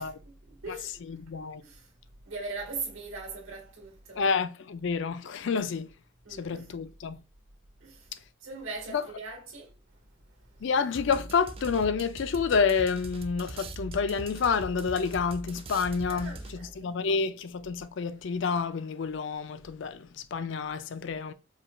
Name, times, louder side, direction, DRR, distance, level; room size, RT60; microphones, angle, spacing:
voice 1, 0.0-1.3 1.6-4.2 6.2-6.7 7.8-10.7 16.1-16.9, right 3 dB, 80° right, 1.7 m, -41 dB
voice 2, 1.1-1.6 4.2-5.9 6.3-7.2 8.9-9.0 10.6-16.3 16.8-21.3, left 5 dB, 65° left, 0.4 m, -29 dB
sound 1, 10.9-16.8, right 2 dB, 30° right, 0.4 m, -41 dB
4.9 x 2.3 x 3.0 m
head